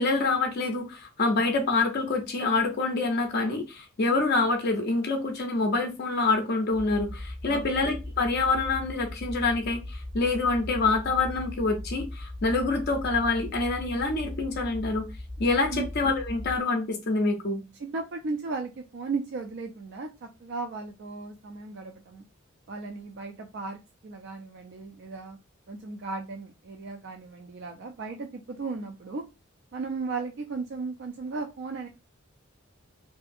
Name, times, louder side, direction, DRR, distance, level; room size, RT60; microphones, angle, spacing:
voice 1, 0.0-15.1 15.4-17.6, left 3 dB, 50° left, 0.5 m, -26 dB
sound 1, 6.7-16.6, left 1 dB, ahead, 0.6 m, -39 dB
voice 2, 17.8-22.2 22.7-25.4 25.7-29.2 29.7-31.9, right 4 dB, 50° right, 0.3 m, -36 dB
2.6 x 2.3 x 2.5 m
head